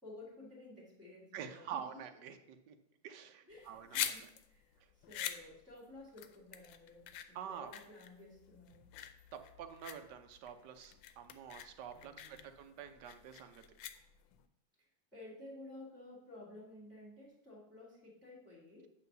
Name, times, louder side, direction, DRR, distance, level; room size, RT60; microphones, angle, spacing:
voice 1, 0.0-1.8 3.5-8.8 11.9-12.5 15.1-18.9, left 2 dB, ahead, -5 dB, 2.3 m, -54 dB
voice 2, 1.3-2.8 3.0-4.3 4.8-4.9 7.3-7.7 9.3-13.6, right 8 dB, 70° right, 7 dB, 1.3 m, -47 dB
sound 1, 3.5-14.4, left 10 dB, 80° left, 1.3 m, -45 dB
8.8 x 3.3 x 6.7 m, 0.79 s
omnidirectional pair, 2.1 m